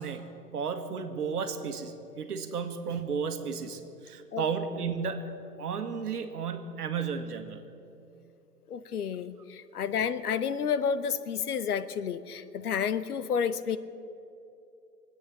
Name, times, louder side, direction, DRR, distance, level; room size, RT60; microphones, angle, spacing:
voice 1, 0.0-7.7 9.8-9.9, right 6 dB, 65° right, 8 dB, 1.7 m, -34 dB
voice 2, 8.7-13.8, left 7 dB, 65° left, 13 dB, 1.0 m, -30 dB
22.0 x 8.9 x 7.4 m, 2.6 s
hypercardioid pair, 130°, 49 cm